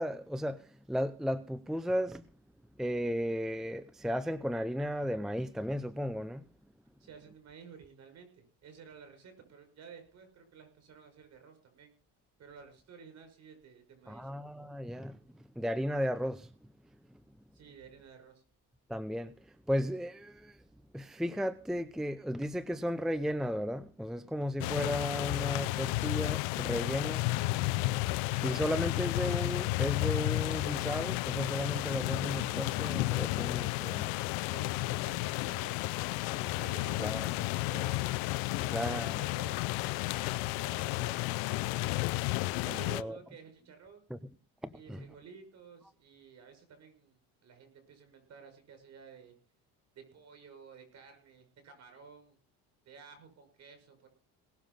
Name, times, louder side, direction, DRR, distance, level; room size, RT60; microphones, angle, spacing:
voice 1, 0.0-2.2 2.8-6.4 14.1-15.2 15.6-16.5 18.9-19.3 19.7-20.6 20.9-27.3 28.4-34.1 37.0-37.3 38.7-39.1 42.7-43.2 44.1-44.2 44.6-45.0, equal, ahead, 0.6 m, -34 dB
voice 2, 7.0-11.9 12.4-14.3 15.2-15.3 17.5-18.4 34.5-38.1 38.5-41.9 42.6-44.1 44.7-49.3 49.9-52.4 52.8-54.1, right 6 dB, 50° right, 6.2 m, -53 dB
sound 1, 24.6-43.0, left 22 dB, 90° left, 0.6 m, -32 dB
18.5 x 7.2 x 5.6 m
cardioid pair, 100°, 34 cm